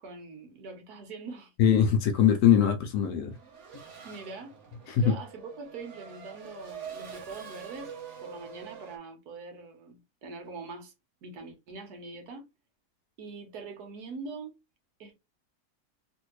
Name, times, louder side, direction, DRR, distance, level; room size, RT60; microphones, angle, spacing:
voice 1, 0.0-1.5 4.0-4.6 5.0-7.9 8.2-10.9 11.2-12.5 13.2-14.6 15.0-15.1, right 4 dB, 75° right, 1.5 m, -43 dB
voice 2, 1.6-3.3 4.9-5.2, left 8 dB, 75° left, 1.1 m, -22 dB
Race car auto racing / Accelerating revving vroom, 3.3-9.0, right 7 dB, 55° right, 1.1 m, -45 dB
3.3 x 2.6 x 3.0 m
omnidirectional pair, 1.7 m